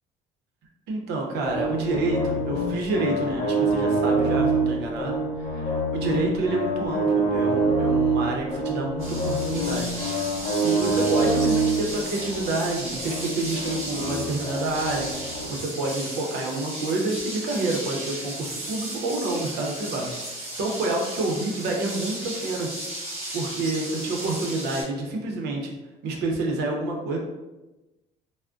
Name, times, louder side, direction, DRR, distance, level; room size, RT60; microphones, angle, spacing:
voice 1, 0.9-5.2 5.5-9.9 10.6-22.7 23.3-25.7 26.0-27.2, right 2 dB, 80° right, 1 dB, 0.6 m, -28 dB
sound 1, 1.4-15.5, right 2 dB, 40° left, 0.6 m, -26 dB
sound 2, 9.0-24.8, right 1 dB, 40° right, 1.3 m, -35 dB
3.4 x 2.0 x 2.5 m, 1.1 s
cardioid pair, 110°, 17 cm